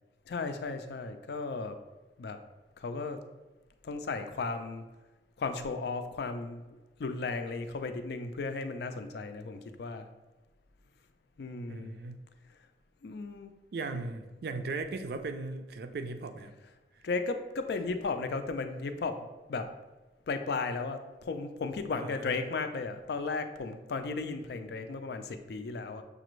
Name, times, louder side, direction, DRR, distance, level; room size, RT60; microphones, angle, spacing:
voice 1, 0.3-1.8 2.2-2.4 2.8-3.2 3.8-4.9 5.4-10.1 11.4-12.0 13.0-13.5 17.0-19.7 20.3-26.0, left 4 dB, 65° left, 8 dB, 0.4 m, -35 dB
voice 2, 11.7-12.2 13.7-16.5 21.9-22.4, right 3 dB, 60° right, 8 dB, 0.4 m, -38 dB
6.7 x 2.5 x 3.1 m, 1.2 s
head